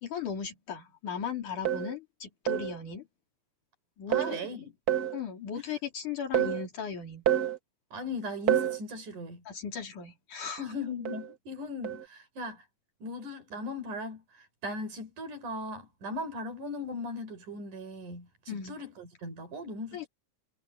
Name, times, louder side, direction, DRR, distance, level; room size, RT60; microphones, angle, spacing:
voice 1, 0.0-3.1 4.0-4.4 5.1-7.2 9.5-10.6 18.5-18.8 19.9-20.1, left 7 dB, 80° left, 5.1 m, -37 dB
sound 1, 1.6-2.0 2.5-2.8 4.1-4.4 4.9-5.2 6.3-6.7 7.3-7.6 8.5-8.8 11.0-11.3 11.8-12.0, right 11 dB, 40° right, 1.4 m, -28 dB
voice 2, 4.1-4.7 5.6-5.7 7.9-9.4 10.6-12.7 13.0-20.1, left 2 dB, 80° right, 6.8 m, -38 dB
omnidirectional pair, 3.5 m